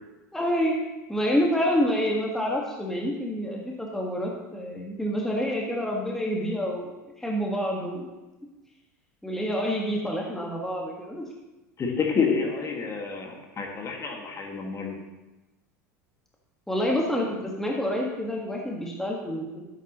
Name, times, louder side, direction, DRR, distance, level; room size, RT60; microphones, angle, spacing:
voice 1, 0.3-0.8 1.1-6.9 7.2-8.1 9.2-11.3 16.7-19.6, equal, 5° left, -2 dB, 1.7 m, -27 dB
voice 2, 11.8-15.0, left 5 dB, 30° left, 1 dB, 2.0 m, -28 dB
13.0 x 8.1 x 3.1 m, 1.1 s
hypercardioid pair, 85°, 10 cm